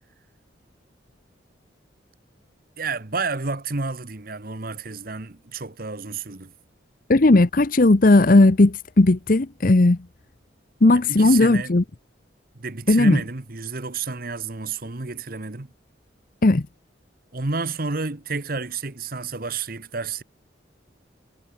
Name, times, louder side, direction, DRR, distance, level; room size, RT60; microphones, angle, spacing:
voice 1, 2.8-6.5 10.9-11.8 12.6-15.7 17.3-20.2, right 4 dB, 50° right, 1.3 m, -30 dB
voice 2, 7.1-10.0 10.8-11.8 12.9-13.2 16.4-16.6, left 2 dB, 45° left, 0.8 m, -16 dB
head